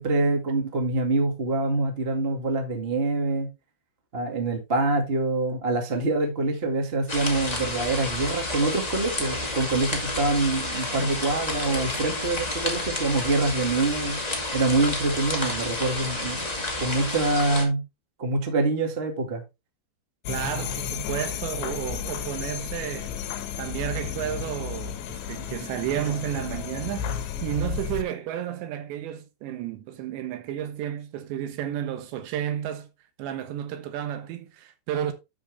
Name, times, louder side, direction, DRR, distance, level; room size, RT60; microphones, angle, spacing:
voice 1, 0.0-3.5 4.1-14.2 14.5-16.4 16.8-17.8 18.2-19.4, right 2 dB, 40° right, 0.8 m, -25 dB
sound 1, 7.1-17.6, left 2 dB, 45° left, 0.5 m, -30 dB
sound 2, 20.3-28.0, left 8 dB, 80° left, 3.6 m, -33 dB
voice 2, 20.3-23.1 23.6-32.9 33.2-35.1, right 10 dB, 80° right, 3.4 m, -32 dB
10.0 x 6.6 x 3.4 m
omnidirectional pair, 5.1 m